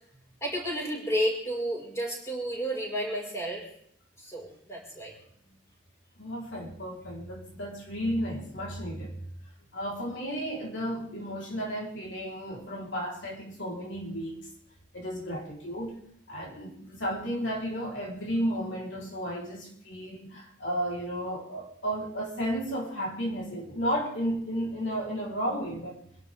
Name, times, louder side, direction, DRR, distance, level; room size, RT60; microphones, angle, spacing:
voice 1, 0.4-3.6 4.2-5.1, equal, 15° left, 5.3 m, -31 dB
voice 2, 6.2-9.2 9.7-14.4 14.9-16.0 16.3-26.0, equal, 70° left, 4.3 m, -33 dB
27.0 x 12.0 x 3.7 m
head